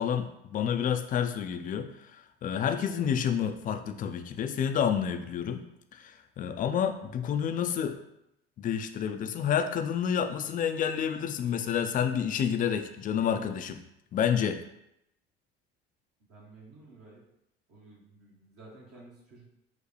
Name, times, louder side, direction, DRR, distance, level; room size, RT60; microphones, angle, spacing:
voice 1, 0.0-5.6 5.9-8.0 8.6-13.8 14.1-14.6, left 8 dB, 30° left, 7 dB, 0.4 m, -29 dB
voice 2, 16.3-17.2 17.7-19.5, right 2 dB, 50° right, -5 dB, 1.2 m, -52 dB
4.7 x 2.1 x 3.3 m, 0.82 s
figure-of-eight pair, 65°, 31 cm